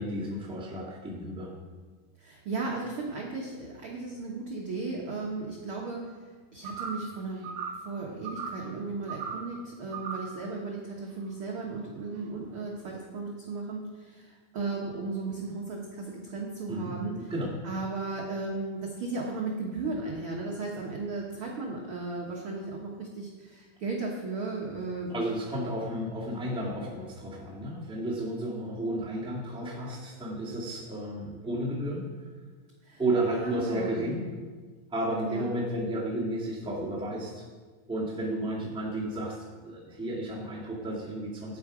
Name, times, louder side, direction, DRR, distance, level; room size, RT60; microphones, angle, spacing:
voice 1, 0.0-1.5 16.7-17.5 25.1-32.0 33.0-34.2 34.9-37.4 37.9-41.6, right 1 dB, 5° right, -7 dB, 0.5 m, -32 dB
voice 2, 2.2-6.0 6.5-7.5 7.8-17.2 17.6-25.1 32.8-34.0 35.2-35.4, right 3 dB, 65° right, -2 dB, 1.3 m, -35 dB
sound 1, 6.7-7.1 7.4-7.9 8.3-8.7 9.1-9.5 9.9-10.4, right 5 dB, 85° right, 2.7 m, -37 dB
12.5 x 9.5 x 5.0 m, 1.5 s
omnidirectional pair, 4.3 m